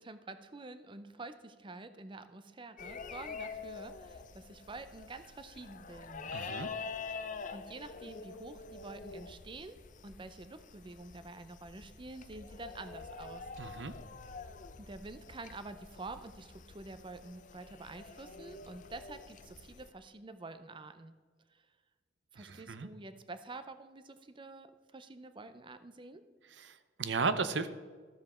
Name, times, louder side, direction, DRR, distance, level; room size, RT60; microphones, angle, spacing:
voice 1, 0.0-6.3 7.5-9.8 10.0-13.5 14.8-21.1 22.3-26.2, right 3 dB, 25° right, 11 dB, 0.6 m, -48 dB
sound 1, 2.8-19.9, left 5 dB, 45° left, 0.6 m, -46 dB
voice 2, 6.3-6.7 13.6-13.9 22.4-22.9 26.6-27.7, right 4 dB, 75° right, 12 dB, 0.6 m, -35 dB
12.5 x 7.4 x 4.3 m, 1.5 s
head